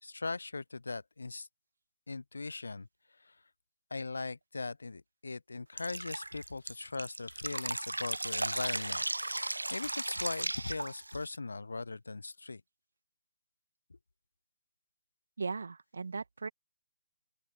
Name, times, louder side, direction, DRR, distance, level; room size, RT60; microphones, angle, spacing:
voice 1, 0.0-1.5 2.1-3.4 3.9-9.0 9.7-12.6, left 3 dB, 75° left, 0.7 m, -40 dB
Drip, 5.8-11.4, right 2 dB, 85° right, 1.1 m, -36 dB
voice 2, 15.4-16.5, right 4 dB, 65° right, 2.2 m, -37 dB
open air
figure-of-eight pair, 140°, 0 cm